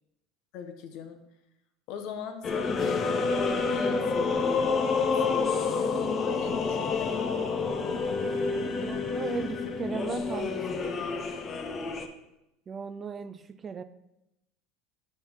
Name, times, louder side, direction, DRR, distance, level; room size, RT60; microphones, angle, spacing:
voice 1, 0.5-1.2 1.9-4.7 5.1-7.4, left 7 dB, 65° left, 7 dB, 0.9 m, -40 dB
sound 1, 2.4-12.1, left 4 dB, 35° left, 0.7 m, -28 dB
voice 2, 8.8-11.0 12.7-13.8, right 6 dB, 30° right, 13 dB, 0.4 m, -37 dB
5.5 x 5.5 x 4.5 m, 0.86 s
supercardioid pair, 100°, 0 cm